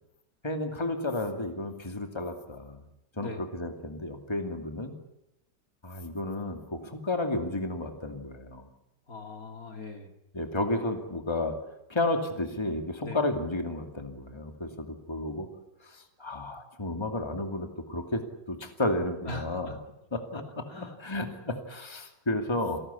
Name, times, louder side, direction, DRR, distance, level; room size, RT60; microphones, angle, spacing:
voice 1, 0.4-2.8 3.2-4.9 5.8-8.7 10.3-11.6 11.9-15.5 15.8-19.8 20.1-20.6 21.0-22.8, left 2 dB, 15° left, 5 dB, 2.5 m, -32 dB
voice 2, 9.1-10.1 13.0-13.2 19.3-19.8 20.3-20.4 20.7-21.0, left 2 dB, 55° left, 5 dB, 2.8 m, -40 dB
28.5 x 18.5 x 8.5 m, 0.86 s
omnidirectional pair, 1.8 m